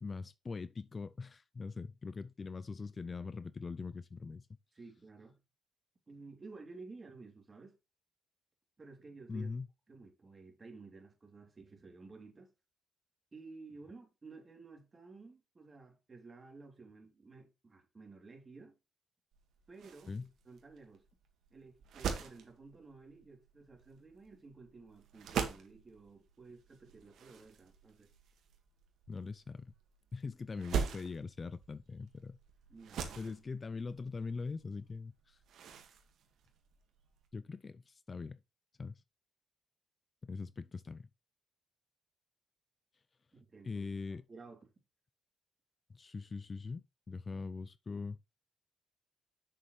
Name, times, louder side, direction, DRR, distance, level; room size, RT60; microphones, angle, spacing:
voice 1, 0.0-4.5 9.3-9.7 20.1-20.3 29.1-29.7 30.1-32.4 33.2-35.4 37.3-38.4 38.8-39.0 40.2-41.1 43.6-44.2 45.9-48.2, left 4 dB, 35° left, 0.4 m, -42 dB
voice 2, 4.7-5.4 6.1-7.7 8.8-9.5 9.9-12.5 13.3-18.7 19.7-20.2 20.4-21.0 21.5-28.1 32.7-33.3 43.3-43.9 44.3-44.7, right 3 dB, 30° right, 3.0 m, -54 dB
sound 1, 19.3-37.3, right 6 dB, 70° right, 1.8 m, -43 dB
7.4 x 6.7 x 3.2 m
cardioid pair, 90°, 0 cm